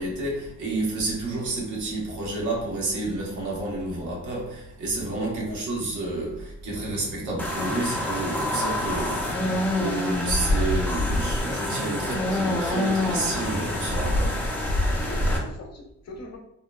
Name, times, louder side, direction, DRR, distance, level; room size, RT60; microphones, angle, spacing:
voice 1, 0.0-14.4 14.9-15.0, right 2 dB, 75° right, 1.0 m, -30 dB
voice 2, 5.3-5.7 15.0-16.4, left 2 dB, 60° left, 0.7 m, -40 dB
sound 1, 6.8-15.5, right 1 dB, 50° right, 0.7 m, -43 dB
sound 2, 7.4-15.4, left 1 dB, 5° left, 0.5 m, -26 dB
2.8 x 2.1 x 2.3 m
cardioid pair, 90°, 30 cm